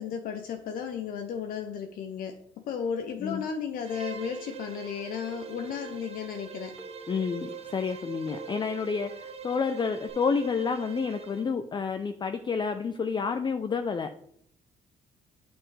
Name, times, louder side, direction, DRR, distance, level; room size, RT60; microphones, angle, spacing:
voice 1, 0.0-6.8, left 7 dB, 75° left, 5 dB, 0.7 m, -34 dB
Bowed string instrument, 3.8-11.5, right 7 dB, 45° right, 0.8 m, -43 dB
Telephone, 4.1-4.8 5.3-6.0 6.7-7.5 8.0-9.0 9.7-10.1, right 2 dB, 5° left, 1.9 m, -46 dB
voice 2, 7.1-14.1, left 5 dB, 30° left, 8 dB, 0.5 m, -29 dB
8.7 x 5.4 x 3.3 m, 0.69 s
cardioid pair, 85°, 15 cm